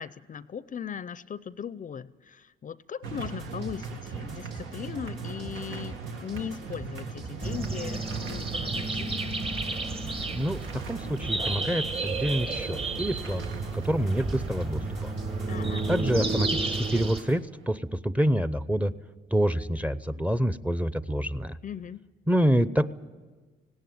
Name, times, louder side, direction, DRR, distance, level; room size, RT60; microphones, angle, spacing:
voice 1, 0.0-9.3 15.4-15.9 21.6-22.0, left 8 dB, 40° left, 17 dB, 0.6 m, -38 dB
sound 1, 3.0-17.4, right 5 dB, 80° right, 1.7 m, -41 dB
sound 2, 3.2-17.4, right 3 dB, 60° right, 2.6 m, -45 dB
sound 3, 7.4-17.2, right 3 dB, 30° right, 1.3 m, -31 dB
voice 2, 10.3-13.4 13.7-15.1 15.9-18.9 19.3-21.6 22.3-22.9, equal, 5° right, 14 dB, 0.7 m, -27 dB
18.5 x 17.0 x 9.3 m, 1.3 s
cardioid pair, 90°, 20 cm